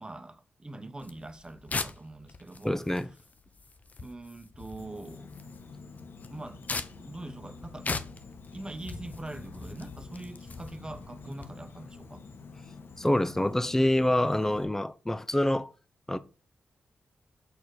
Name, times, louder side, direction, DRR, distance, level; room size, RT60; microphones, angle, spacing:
voice 1, 0.0-2.8 4.0-5.3 6.3-6.6 7.0-7.9 8.5-12.2, right 2 dB, 20° right, 1.3 m, -43 dB
sound 1, 1.0-11.5, left 3 dB, 40° left, 1.1 m, -40 dB
voice 2, 2.6-3.1 13.0-15.7 16.1-16.2, left 1 dB, 10° left, 0.8 m, -26 dB
Insect, 4.8-14.6, left 4 dB, 70° left, 1.6 m, -48 dB
7.9 x 4.3 x 6.6 m
cardioid pair, 70°, 4 cm